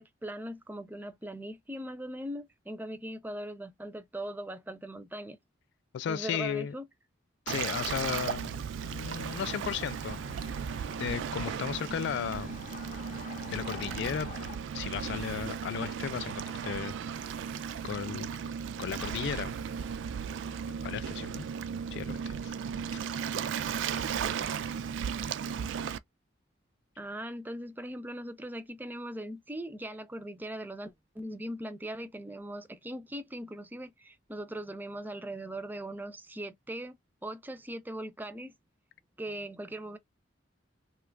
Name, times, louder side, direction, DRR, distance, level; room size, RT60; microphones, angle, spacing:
voice 1, 0.0-5.4 6.1-6.8 27.0-38.5 39.2-40.0, right 1 dB, 10° right, 0.5 m, -40 dB
voice 2, 5.9-6.7 7.5-8.6 8.9-10.2 11.0-12.5 13.5-14.3 14.7-16.9 17.8-18.4 18.8-19.5 20.8-21.5 21.9-22.5 22.9-23.0 24.5-24.6, left 8 dB, 65° left, 0.3 m, -35 dB
Waves surf, 7.5-26.0, right 7 dB, 70° right, 0.3 m, -36 dB
sound 1, 8.8-14.6, left 3 dB, 45° left, 0.7 m, -46 dB
2.9 x 2.4 x 3.3 m
head